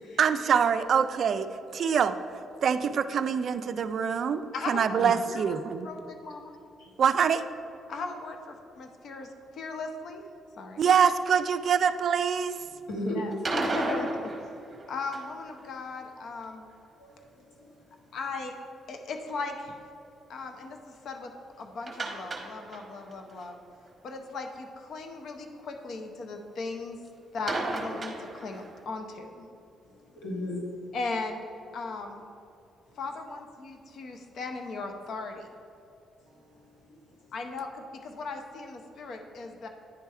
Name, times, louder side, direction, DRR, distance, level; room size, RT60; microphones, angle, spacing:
voice 1, 0.2-1.4 1.7-2.2 2.6-5.9 7.0-7.4 10.8-12.5, right 7 dB, 60° right, 11 dB, 0.3 m, -24 dB
voice 2, 4.5-5.0 5.3-5.6 5.8-6.6 7.9-10.2 10.6-10.8 13.1-14.3 14.9-16.7 18.1-18.5 18.9-19.8 20.3-21.3 21.6-23.6 24.0-27.0 27.3-29.5 30.9-31.4 31.7-32.3 33.0-35.5 37.3-39.7, left 3 dB, 65° left, 4 dB, 0.7 m, -37 dB
voice 3, 12.9-13.4 17.0-17.7 29.8-30.6 36.3-37.2, left 1 dB, 90° left, -1 dB, 1.4 m, -36 dB
sound 1, 13.3-15.5 21.9-23.1 23.4-23.5 23.9-24.0 27.5-28.8, right 2 dB, 30° right, 1.0 m, -33 dB
9.6 x 3.4 x 4.4 m, 2.6 s
cardioid pair, 90°, 0 cm